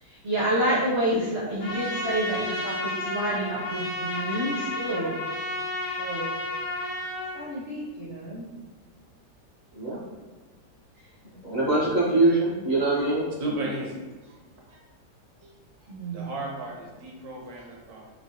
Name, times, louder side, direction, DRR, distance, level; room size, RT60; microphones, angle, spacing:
voice 1, 0.0-5.2 6.0-6.5 7.3-8.5 15.9-16.3, right 1 dB, 55° right, -9 dB, 0.7 m, -29 dB
Trumpet, 1.6-7.4, left 1 dB, 75° left, 1.1 m, -32 dB
voice 2, 11.4-13.3, right 2 dB, 45° left, -11 dB, 0.6 m, -23 dB
voice 3, 13.4-14.4 14.7-14.8 15.4-15.5 15.8-18.1, right 2 dB, 70° right, -1 dB, 1.0 m, -35 dB
3.4 x 2.2 x 2.6 m, 1.3 s
omnidirectional pair, 1.8 m